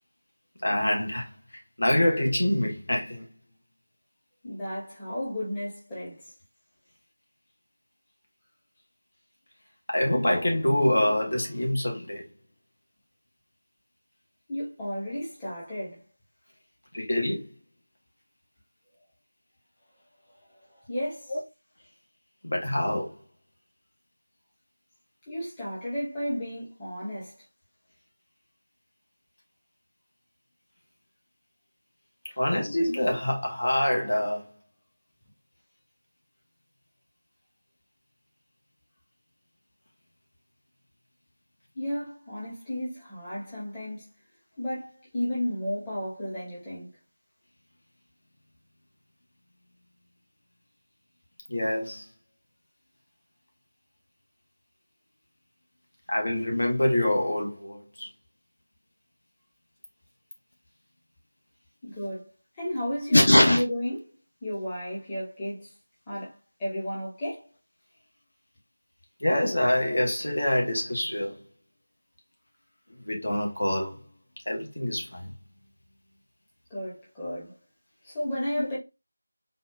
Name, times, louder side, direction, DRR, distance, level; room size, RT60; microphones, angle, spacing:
voice 1, 0.6-3.2 9.9-12.3 16.9-17.5 21.3-21.4 22.4-23.1 32.4-34.5 51.5-52.1 56.1-58.1 63.1-63.6 69.2-71.4 73.0-74.0 74.5-75.3 78.6-78.7, left 1 dB, 60° left, 1.3 m, -25 dB
voice 2, 4.4-6.3 14.5-16.0 20.9-21.3 25.3-27.3 41.7-44.1 44.6-46.9 61.8-62.3 62.6-64.0 64.4-65.7 66.1-66.3 66.6-67.5 76.7-77.5 78.0-78.8, equal, 10° left, 1.1 m, -33 dB
4.2 x 2.4 x 2.4 m
figure-of-eight pair, 170°, 0 cm